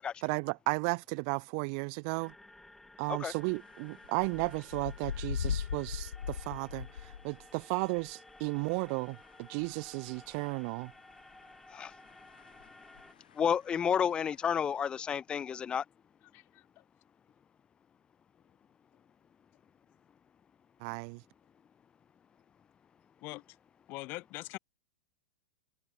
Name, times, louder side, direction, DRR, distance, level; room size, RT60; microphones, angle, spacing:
voice 1, 0.2-2.3 3.0-10.9 20.8-21.2, right 40 dB or more, 50° right, 1.7 m, -34 dB
sound 1, 2.2-13.1, left 1 dB, 5° left, 7.1 m, -56 dB
sound 2, 3.6-3.7 4.0-7.5 12.3-12.7 13.0-13.1 13.3-13.4, left 8 dB, 80° left, 4.9 m, -37 dB
voice 2, 13.4-15.8, left 8 dB, 20° left, 0.4 m, -30 dB
voice 3, 16.2-16.8 23.2-23.4 23.9-24.6, left 22 dB, 45° left, 4.6 m, -43 dB
hypercardioid pair, 105°, 5 cm